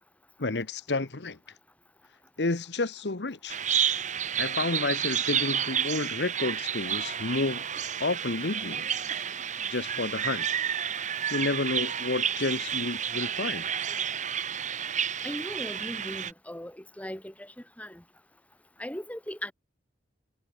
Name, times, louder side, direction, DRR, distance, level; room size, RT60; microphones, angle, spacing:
voice 1, 0.4-1.4 2.4-3.6 4.4-7.6 8.0-8.9 9.4-10.5 11.3-13.7, left 3 dB, 75° left, 1.2 m, -30 dB
Bird vocalization bird call bird song, 3.5-16.3, right 8 dB, 45° right, 1.4 m, -30 dB
voice 2, 15.2-17.5 17.8-18.0 18.8-19.5, equal, 10° left, 2.4 m, -38 dB
head